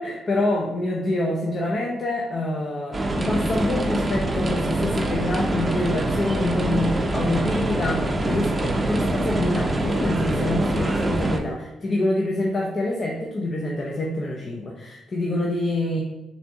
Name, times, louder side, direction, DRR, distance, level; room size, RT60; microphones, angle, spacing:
voice 1, 0.0-16.0, left 1 dB, 40° left, -1 dB, 0.6 m, -26 dB
sound 1, 2.9-11.4, right 1 dB, 25° right, 0.6 m, -24 dB
4.3 x 2.8 x 3.4 m, 1.0 s
cardioid pair, 85°, 0 cm